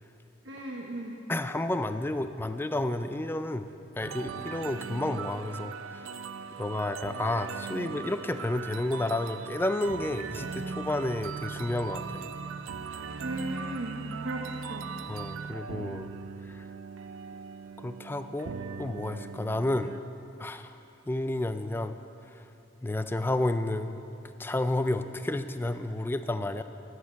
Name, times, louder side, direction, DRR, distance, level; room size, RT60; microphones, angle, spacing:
voice 1, 0.4-1.2 13.2-14.8, right 1 dB, 65° right, -1 dB, 1.1 m, -36 dB
voice 2, 1.3-3.7 4.0-6.0 6.6-12.3 15.1-16.1 16.5-16.7 17.8-19.9 20.4-20.8 21.1-22.0 22.4-22.5 22.8-26.6, left 1 dB, 10° left, 9 dB, 0.4 m, -31 dB
sound 1, 4.0-20.0, right 5 dB, 80° right, 0.4 m, -39 dB
12.5 x 6.4 x 8.3 m, 2.8 s
head